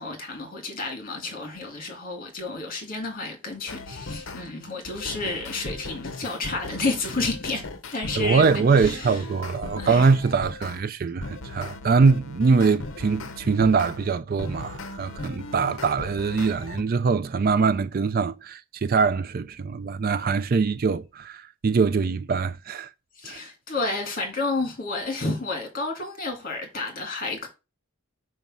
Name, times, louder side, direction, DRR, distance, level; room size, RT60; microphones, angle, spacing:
voice 1, 0.0-7.6 7.9-9.2 9.8-10.0 23.2-27.5, left 3 dB, 40° left, 2.2 m, -31 dB
sound 1, 3.7-4.5 4.8-10.8 11.2-16.8, left 2 dB, 55° left, 0.8 m, -37 dB
voice 2, 8.2-22.9 23.3-23.4, right 4 dB, 40° right, 0.3 m, -23 dB
5.3 x 4.7 x 6.1 m
head